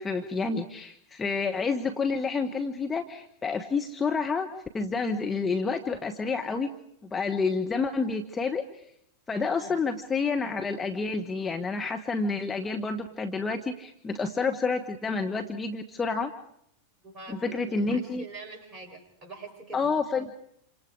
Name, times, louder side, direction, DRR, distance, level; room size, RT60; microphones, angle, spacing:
voice 1, 0.0-4.5 4.7-6.7 7.0-8.6 9.3-16.3 17.3-18.2 19.7-20.3, left 4 dB, 15° left, 4 dB, 1.5 m, -29 dB
voice 2, 17.0-19.9, right 3 dB, 30° right, 2 dB, 7.6 m, -44 dB
28.5 x 26.0 x 5.0 m, 0.72 s
figure-of-eight pair, 90°, 0 cm